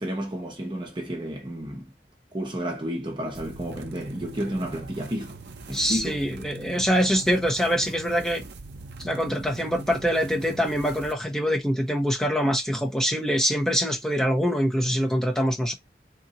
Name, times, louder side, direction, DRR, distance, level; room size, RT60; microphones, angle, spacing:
voice 1, 0.0-1.9 2.3-5.4 5.7-6.2, equal, 25° right, 1.0 m, -31 dB
sound 1, 3.3-11.1, right 3 dB, 75° right, 0.7 m, -42 dB
voice 2, 5.7-8.4 9.0-15.7, equal, 5° left, 0.9 m, -24 dB
3.8 x 2.7 x 4.2 m
head